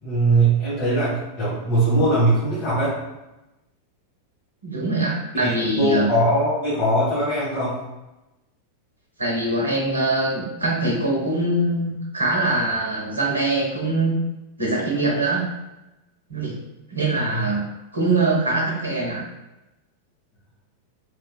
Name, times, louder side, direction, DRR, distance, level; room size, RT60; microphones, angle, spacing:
voice 1, 0.0-3.0 5.3-7.8 17.3-17.5, right 1 dB, 35° left, -11 dB, 1.2 m, -21 dB
voice 2, 4.6-6.1 9.2-14.2 14.6-15.4 16.3-16.6 16.9-17.6 17.9-19.2, right 2 dB, 80° right, -2 dB, 0.7 m, -23 dB
2.9 x 2.3 x 2.2 m, 0.98 s
figure-of-eight pair, 90°, 0 cm